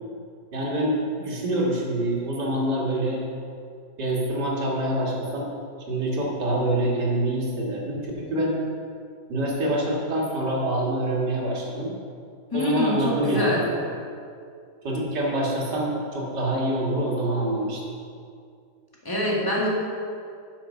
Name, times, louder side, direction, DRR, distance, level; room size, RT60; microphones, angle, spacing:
voice 1, 0.5-3.2 4.0-5.5 5.9-8.6 9.3-11.9 12.5-13.7 14.8-17.8, right 1 dB, 90° right, -3 dB, 2.5 m, -26 dB
voice 2, 12.5-13.6 19.0-19.7, left 1 dB, 15° left, -4 dB, 1.9 m, -25 dB
12.0 x 6.4 x 5.4 m, 2.3 s
omnidirectional pair, 1.8 m